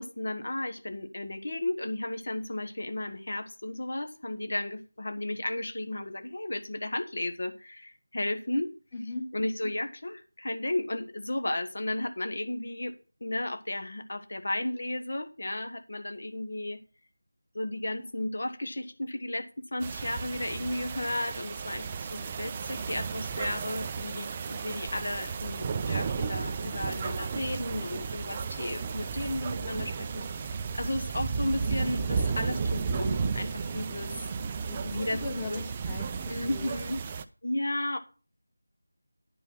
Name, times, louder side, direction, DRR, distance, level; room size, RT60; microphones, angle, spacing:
voice 1, 0.0-8.7 9.3-12.9 13.2-16.8 17.5-34.3 34.8-35.2 35.5-35.6 36.3-37.0 37.4-38.0, left 1 dB, 60° left, 8 dB, 1.3 m, -34 dB
voice 2, 8.9-9.3 34.7-36.8, left 2 dB, 10° left, 0 dB, 1.5 m, -39 dB
sound 1, 19.8-37.2, right 5 dB, 20° right, 0.4 m, -33 dB
10.5 x 5.5 x 5.9 m, 0.35 s
figure-of-eight pair, 170°, 0 cm